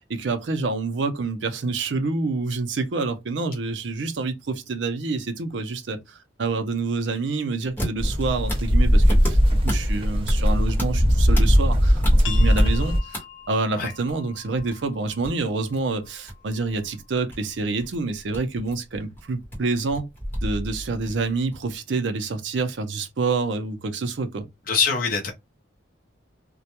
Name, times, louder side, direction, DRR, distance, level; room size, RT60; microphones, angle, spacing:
voice 1, 0.1-9.4 9.6-20.1 20.4-24.5, right 3 dB, 75° right, 0.5 m, -27 dB
sound 1, 7.7-13.2 13.4-21.7, equal, 10° left, 0.9 m, -34 dB
sound 2, 8.0-13.0, equal, 30° right, 0.6 m, -19 dB
sound 3, 12.2-17.6, left 8 dB, 85° left, 0.7 m, -42 dB
voice 2, 24.7-25.3, left 5 dB, 50° left, 0.5 m, -23 dB
2.2 x 2.1 x 2.8 m
head